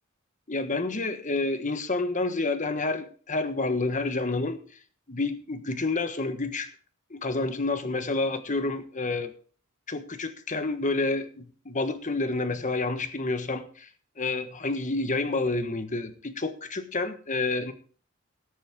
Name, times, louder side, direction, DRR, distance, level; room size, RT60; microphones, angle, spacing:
voice 1, 0.5-4.6 5.1-6.7 7.1-9.3 9.9-13.9 14.2-17.7, left 3 dB, 35° left, 9 dB, 1.4 m, -29 dB
18.0 x 9.1 x 3.7 m, 0.41 s
head